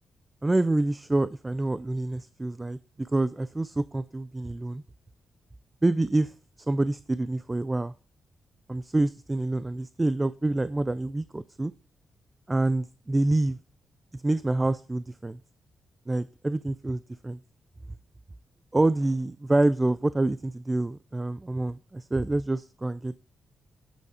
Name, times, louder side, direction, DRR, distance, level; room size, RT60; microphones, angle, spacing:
voice 1, 0.4-4.8 5.8-6.3 6.7-7.9 8.7-11.7 12.5-13.6 14.1-15.4 16.1-17.4 18.7-23.2, right 2 dB, 15° right, 16 dB, 0.3 m, -27 dB
9.0 x 8.3 x 4.2 m, 0.38 s
wide cardioid pair, 140°, 0 cm